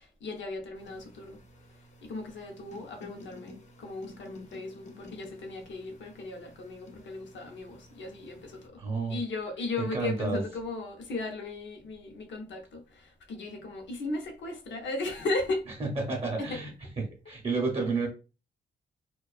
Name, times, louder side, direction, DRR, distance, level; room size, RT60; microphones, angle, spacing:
voice 1, 0.0-1.4 2.0-8.8 9.1-15.7 16.4-16.6, left 3 dB, 80° left, 0.7 m, -36 dB
sound 1, 0.7-8.7, left 2 dB, 40° left, 0.5 m, -52 dB
voice 2, 8.8-9.2 9.8-10.4 15.8-16.7 17.0-18.1, right 3 dB, 30° right, 0.6 m, -30 dB
2.4 x 2.2 x 2.3 m
wide cardioid pair, 150°, 19 cm